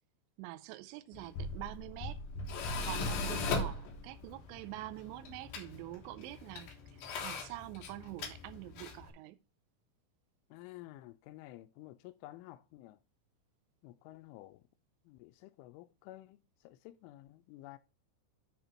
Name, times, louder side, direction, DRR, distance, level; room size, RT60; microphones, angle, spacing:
voice 1, 0.4-2.2 2.8-6.7 7.0-9.4, right 16 dB, 85° right, 2.6 m, -45 dB
Tools, 1.1-9.1, left 3 dB, 65° left, 2.5 m, -39 dB
voice 2, 10.5-13.0 13.8-14.6 15.1-16.4 16.6-17.8, left 16 dB, 85° left, 3.1 m, -52 dB
9.5 x 3.7 x 5.8 m
omnidirectional pair, 5.6 m